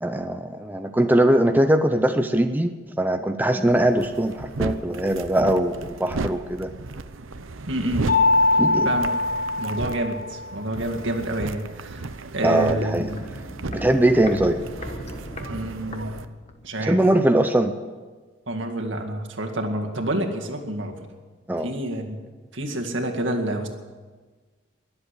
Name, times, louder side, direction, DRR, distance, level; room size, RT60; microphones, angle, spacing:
voice 1, 0.0-6.7 8.6-8.9 12.4-13.1 13.7-14.7 16.8-17.8 21.5-21.7, right 1 dB, 10° right, 7 dB, 0.6 m, -21 dB
sound 1, 3.7-16.3, right 3 dB, 90° right, 0.8 m, -35 dB
voice 2, 7.7-8.1 8.8-9.1 9.6-13.2 15.5-16.2 16.6-17.0 18.5-20.9 21.6-22.2 22.5-23.7, right 1 dB, 70° right, 3 dB, 2.1 m, -28 dB
Mallet percussion, 8.1-10.6, left 2 dB, 65° left, 4.0 m, -22 dB
Walk footsteps, 12.2-16.7 17.0-17.1, left 1 dB, 35° left, 1.3 m, -38 dB
22.0 x 8.0 x 8.1 m, 1.4 s
head